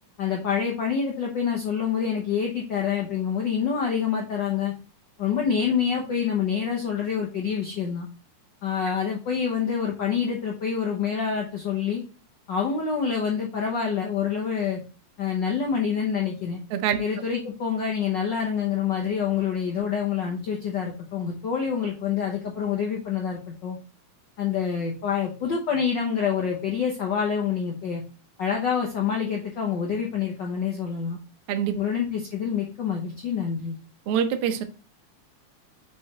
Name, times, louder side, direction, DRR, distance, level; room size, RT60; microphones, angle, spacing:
voice 1, 0.2-4.7 5.2-8.1 8.6-12.0 12.5-14.8 15.2-16.6 17.0-23.8 24.4-28.0 28.4-31.2 31.7-33.7, left 7 dB, 80° left, 1.0 m, -27 dB
voice 2, 34.1-34.6, right 8 dB, 70° right, 1.4 m, -24 dB
6.6 x 4.9 x 3.0 m
omnidirectional pair, 3.4 m